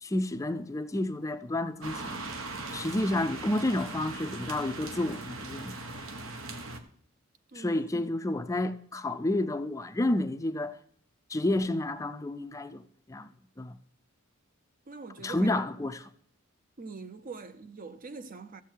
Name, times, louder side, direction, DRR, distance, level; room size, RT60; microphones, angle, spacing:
voice 1, 0.0-2.2 2.7-5.8 7.5-10.8 11.3-12.8 13.1-13.3 13.6-13.8 15.2-16.1, left 1 dB, 15° left, 0.4 m, -30 dB
sound 1, 1.8-6.8, right 2 dB, 75° right, 1.2 m, -39 dB
voice 2, 7.5-7.9 14.9-15.5 16.8-18.6, right 4 dB, 40° right, 0.6 m, -43 dB
14.0 x 7.3 x 4.5 m
head